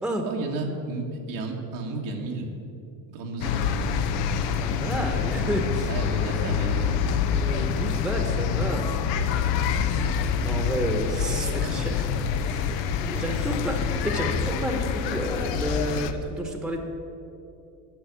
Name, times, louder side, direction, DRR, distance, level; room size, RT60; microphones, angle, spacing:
voice 1, 0.2-2.5 3.1-4.0 5.9-7.3 13.1-13.5, right 3 dB, 85° right, 0 dB, 1.7 m, -33 dB
sound 1, 3.4-16.1, left 6 dB, 85° left, 0.8 m, -26 dB
voice 2, 4.5-5.9 7.3-8.9 10.4-12.1 12.4-16.8, right 1 dB, ahead, 4 dB, 1.0 m, -30 dB
10.0 x 6.4 x 8.4 m, 2.7 s
cardioid pair, 125°, 42 cm